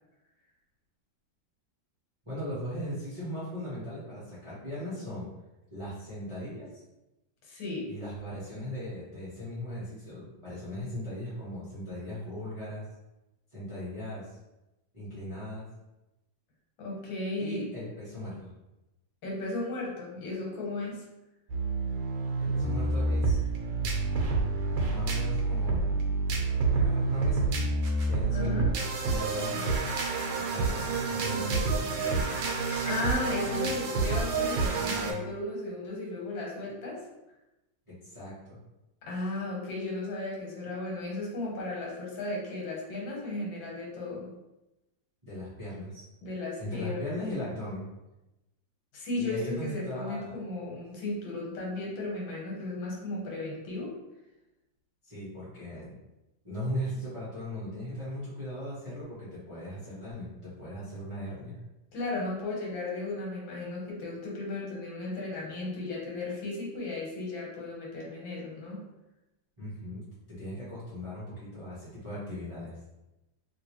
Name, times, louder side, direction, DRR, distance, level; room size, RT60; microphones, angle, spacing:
voice 1, 2.3-5.3 5.7-6.7 7.9-12.8 13.5-14.3 14.9-15.7 17.4-18.5 22.4-23.4 24.9-26.1 26.7-27.4 28.0-28.6 29.1-29.7 30.3-32.3 37.9-38.6 45.2-46.0 46.6-47.8 49.2-50.3 55.0-56.0 56.4-61.6 69.6-70.0 70.4-72.7, equal, 25° right, -12 dB, 0.8 m, -38 dB
voice 2, 7.4-7.9 16.8-17.6 19.2-21.1 28.3-28.7 29.5-29.6 32.9-37.0 39.0-44.3 46.2-47.2 48.9-53.9 61.9-68.9, left 2 dB, 85° left, -3 dB, 1.7 m, -35 dB
sound 1, 21.5-35.1, right 3 dB, 80° right, 1.3 m, -28 dB
2.9 x 2.9 x 3.0 m, 0.97 s
omnidirectional pair, 2.1 m